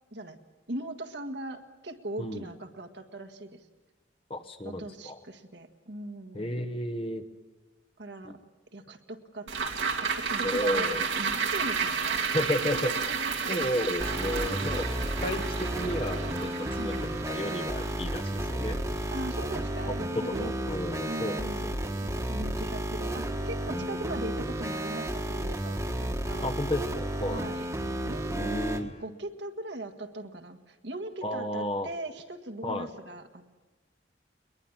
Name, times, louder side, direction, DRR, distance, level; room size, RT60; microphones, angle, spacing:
voice 1, 0.7-3.7 4.6-6.7 8.0-8.4 8.7-9.5 10.0-12.3 13.1-13.5 16.8-17.0 19.1-20.5 21.0-21.8 22.1-26.5 27.3-27.7 28.0-28.3 28.8-33.4, right 1 dB, 65° right, 6 dB, 1.8 m, -40 dB
voice 2, 4.3-5.2 6.3-7.2 8.2-8.4 10.4-11.0 12.3-12.9 13.5-14.9 15.2-18.8 20.1-21.5 23.7-23.9 26.4-27.5 28.3-28.9 31.2-31.9 32.6-32.9, left 1 dB, 30° left, 5 dB, 1.2 m, -32 dB
sound 1, 9.5-20.0 20.4-20.5, right 5 dB, 85° right, 2.5 m, -32 dB
sound 2, 14.0-28.8, right 1 dB, 15° right, 1.5 m, -32 dB
22.0 x 21.0 x 7.4 m, 1.2 s
head